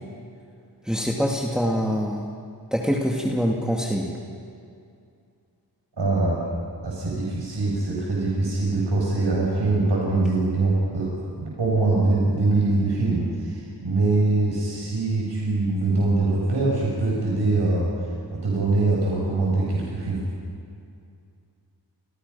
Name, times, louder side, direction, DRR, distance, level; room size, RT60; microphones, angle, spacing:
voice 1, 0.9-2.3 2.7-4.2, equal, ahead, -1 dB, 2.5 m, -24 dB
voice 2, 6.0-6.4 6.8-11.1 11.4-17.9 18.3-20.2, right 2 dB, 65° right, -4 dB, 7.1 m, -23 dB
30.0 x 27.0 x 5.7 m, 2.4 s
wide cardioid pair, 90°, 43 cm